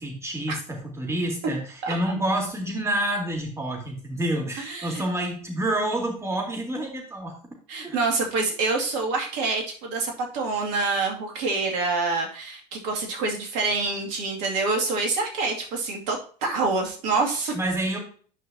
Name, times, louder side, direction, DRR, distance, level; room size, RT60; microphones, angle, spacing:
voice 1, 0.0-7.4 7.8-8.0 17.5-18.0, right 1 dB, 15° right, 0 dB, 3.6 m, -28 dB
voice 2, 4.6-5.0 7.7-17.5, right 3 dB, 60° right, 2 dB, 2.4 m, -26 dB
10.5 x 5.5 x 2.8 m, 0.42 s
figure-of-eight pair, 70°, 21 cm